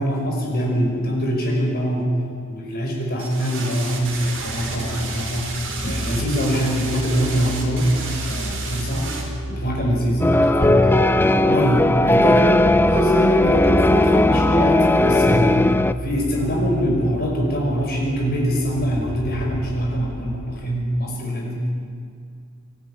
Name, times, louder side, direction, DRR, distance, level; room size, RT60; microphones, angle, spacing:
voice 1, 0.0-2.1 2.5-5.6 5.8-7.9 8.3-9.1 9.5-11.2 11.4-15.7 16.0-21.7, equal, 45° left, -1 dB, 5.4 m, -23 dB
sound 1, 3.2-9.2, right 4 dB, 60° right, 4.1 m, -32 dB
sound 2, 4.0-20.4, equal, 15° right, 6.2 m, -32 dB
sound 3, 10.2-15.9, left 1 dB, 10° left, 0.5 m, -17 dB
24.5 x 13.0 x 10.0 m, 2.2 s
head